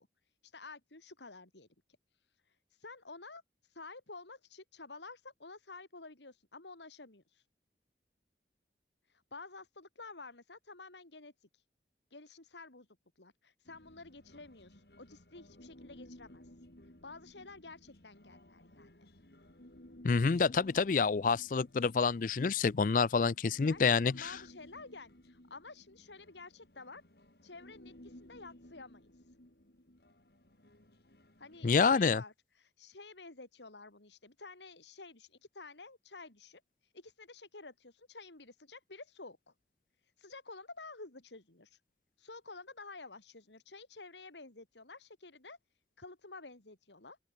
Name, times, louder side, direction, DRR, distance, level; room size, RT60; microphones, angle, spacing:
voice 1, 0.0-1.7 2.1-7.5 9.1-11.6 12.1-12.9 13.2-16.5 16.8-19.1 23.6-27.0 27.4-29.3 31.4-39.5 40.0-41.8 42.2-45.6 46.0-47.2, left 3 dB, 90° left, 3.1 m, -51 dB
Human voice, 13.6-31.8, left 1 dB, 65° left, 3.3 m, -57 dB
voice 2, 20.0-24.3 31.6-32.2, left 5 dB, 50° left, 0.4 m, -28 dB
open air
head